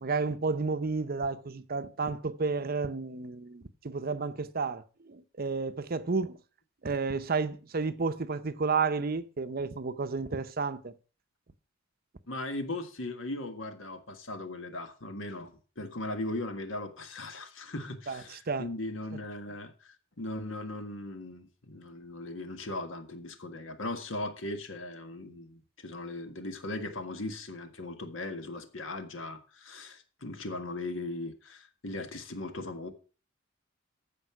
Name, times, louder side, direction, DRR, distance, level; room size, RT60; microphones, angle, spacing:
voice 1, 0.0-6.4 6.8-10.9 18.1-18.7, right 4 dB, 45° right, 0.7 m, -31 dB
voice 2, 12.3-32.9, left 2 dB, 65° left, 1.6 m, -38 dB
14.5 x 5.4 x 5.9 m
head